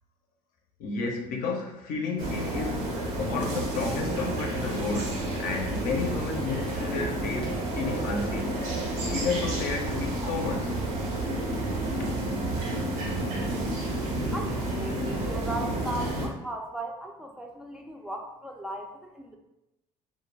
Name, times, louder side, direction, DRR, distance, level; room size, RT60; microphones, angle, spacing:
voice 1, 0.8-2.9 3.1-8.6 9.1-10.7, left 4 dB, 70° left, 2 dB, 0.6 m, -32 dB
sound 1, 2.2-16.3, right 1 dB, 75° right, 0.7 m, -30 dB
voice 2, 14.3-19.4, right 1 dB, 5° right, 1 dB, 0.3 m, -37 dB
2.2 x 2.1 x 3.1 m, 0.97 s
supercardioid pair, 85°, 15 cm